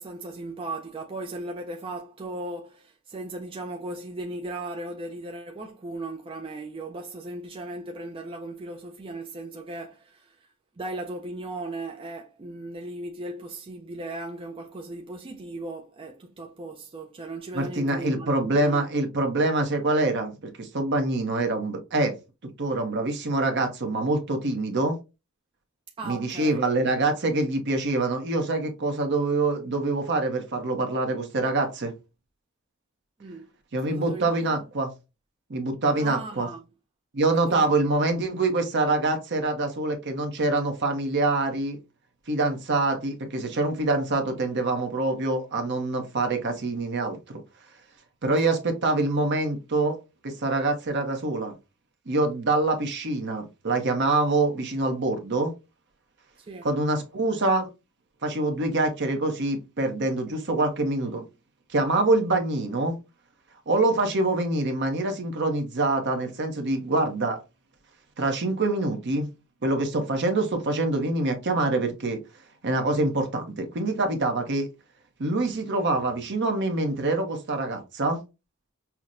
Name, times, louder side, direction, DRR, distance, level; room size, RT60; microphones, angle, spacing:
voice 1, 0.0-10.5 10.8-18.9 26.0-26.6 33.2-33.5 33.9-34.5 35.9-36.6 37.3-37.7 48.4-48.6 56.4-56.7, right 2 dB, 25° right, 0.4 m, -37 dB
voice 2, 17.5-22.1 22.6-25.0 26.0-31.9 33.7-34.9 35.5-36.5 37.1-41.8 42.3-47.2 48.2-50.0 50.2-51.5 52.1-55.5 56.6-57.7 58.2-61.3 61.7-62.9 63.7-67.4 68.2-69.3 69.6-72.2 72.6-74.7 75.2-78.2, right 2 dB, 55° right, 0.8 m, -25 dB
5.8 x 2.1 x 2.5 m
head